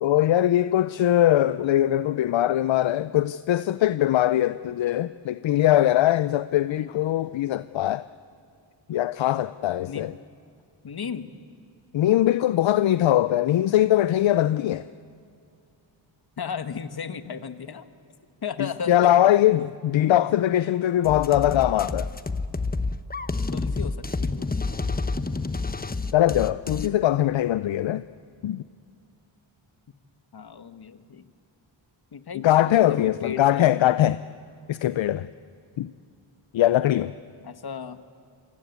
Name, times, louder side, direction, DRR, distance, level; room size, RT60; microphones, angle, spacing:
voice 1, 0.0-8.0 8.9-10.1 11.9-14.8 18.9-22.1 26.1-28.0 28.4-28.6 32.4-34.2 34.7-35.3 35.8-35.9 36.5-37.1, left 13 dB, 70° left, 0.6 m, -21 dB
voice 2, 10.8-11.3 16.4-17.8 18.4-19.2 19.6-19.7 23.5-24.7 30.3-31.3 32.1-33.8 37.4-38.0, left 6 dB, 50° left, 1.5 m, -35 dB
sound 1, 21.0-26.9, left 3 dB, 20° left, 1.0 m, -29 dB
28.5 x 23.5 x 8.4 m
cardioid pair, 80°, 47 cm